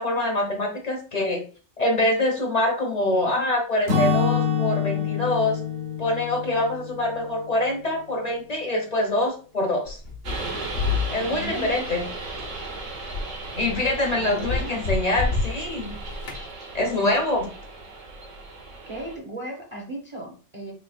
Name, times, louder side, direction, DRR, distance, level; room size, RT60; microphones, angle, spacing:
voice 1, 0.0-1.4 1.8-5.6 6.0-10.0 11.1-12.0 13.5-15.9 16.7-17.5, left 1 dB, 45° left, 2 dB, 0.6 m, -25 dB
Acoustic guitar / Strum, 3.9-7.8, left 6 dB, 60° right, 1.1 m, -26 dB
sound 1, 9.9-16.5, left 4 dB, 85° left, 1.1 m, -31 dB
sound 2, 10.2-19.2, right 3 dB, 85° right, 1.2 m, -36 dB
voice 2, 11.2-11.8 14.1-14.8 18.9-20.7, right 1 dB, 30° right, -1 dB, 0.6 m, -36 dB
3.5 x 3.4 x 2.3 m, 0.38 s
omnidirectional pair, 1.3 m